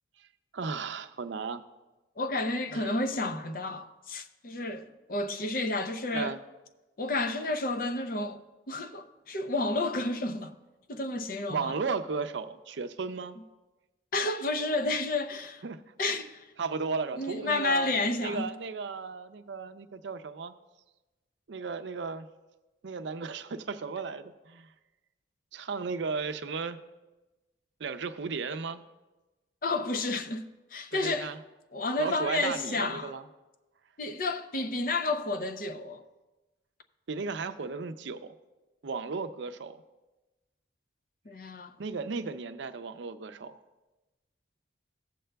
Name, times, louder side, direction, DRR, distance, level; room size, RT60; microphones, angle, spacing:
voice 1, 0.5-1.6 2.7-3.0 6.1-6.4 11.5-13.4 15.6-15.8 16.6-17.9 18.2-20.5 21.5-22.3 22.8-24.7 25.5-26.8 27.8-28.8 30.9-31.4 32.0-33.2 37.1-38.3 38.8-39.8 41.8-43.6, right 4 dB, 70° right, 0.5 m, -35 dB
voice 2, 2.2-6.4 7.0-10.5 10.9-11.7 14.1-15.6 16.0-16.5 17.2-18.5 29.6-31.3 31.7-33.1 34.0-36.0 41.3-41.7, left 2 dB, 45° left, 0.5 m, -31 dB
15.5 x 7.6 x 2.3 m
head